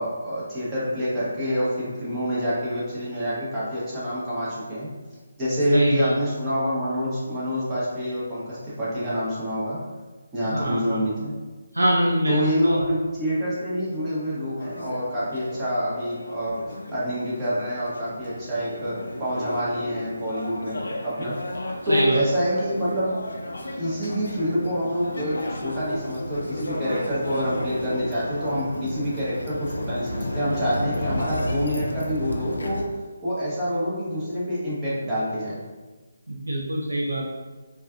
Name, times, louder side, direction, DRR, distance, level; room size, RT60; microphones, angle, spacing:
voice 1, 0.0-4.9 5.4-9.8 10.3-11.3 12.3-16.6 16.9-20.8 21.0-21.3 21.8-23.1 23.8-32.8 33.2-35.6, equal, 15° right, -10 dB, 0.8 m, -27 dB
voice 2, 5.7-6.1 10.4-11.0 11.7-12.9 21.9-22.2 36.3-37.3, right 1 dB, 90° right, -3 dB, 0.4 m, -23 dB
sound 1, 14.6-32.8, left 1 dB, 75° left, 0.4 m, -33 dB
2.5 x 2.3 x 2.3 m, 1.3 s
figure-of-eight pair, 150°, 0 cm